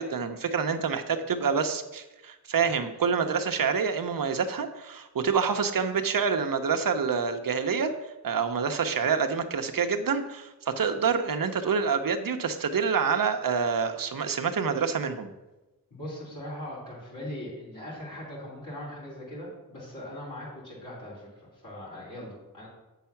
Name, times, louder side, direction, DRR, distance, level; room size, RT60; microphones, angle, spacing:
voice 1, 0.0-7.9 8.2-15.3, right 6 dB, 60° right, 7 dB, 0.8 m, -27 dB
voice 2, 15.9-22.7, left 1 dB, 55° left, -7 dB, 3.5 m, -40 dB
8.2 x 5.6 x 5.8 m, 1.0 s
wide cardioid pair, 95°, 37 cm